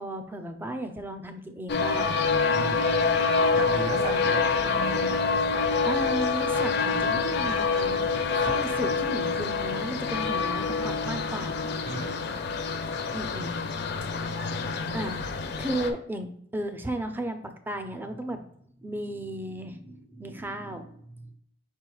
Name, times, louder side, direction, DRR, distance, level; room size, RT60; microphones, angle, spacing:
voice 1, 0.0-2.2 4.0-4.3 5.8-8.1 8.4-11.7 13.1-13.8 14.9-18.5 18.8-21.3, right 1 dB, 10° right, 7 dB, 0.5 m, -35 dB
sound 1, 1.7-15.9, left 4 dB, 60° left, 0.5 m, -26 dB
voice 2, 2.5-4.5 8.3-8.6 11.9-12.3, right 2 dB, 35° right, -1 dB, 1.1 m, -36 dB
5.1 x 4.5 x 2.3 m, 0.67 s
head